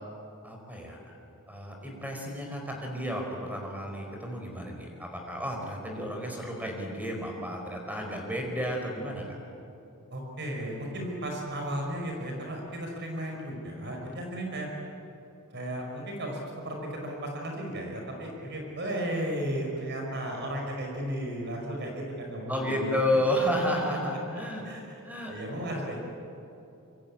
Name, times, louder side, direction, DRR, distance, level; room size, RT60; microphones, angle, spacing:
voice 1, 0.4-1.1 1.5-9.4 22.5-24.6 25.0-25.3 25.7-25.8, equal, 5° right, 1 dB, 4.7 m, -32 dB
voice 2, 10.1-14.7 15.5-23.0 24.3-25.0 25.3-26.0, right 1 dB, 50° right, 1 dB, 5.4 m, -35 dB
26.5 x 25.0 x 8.8 m, 2.9 s
head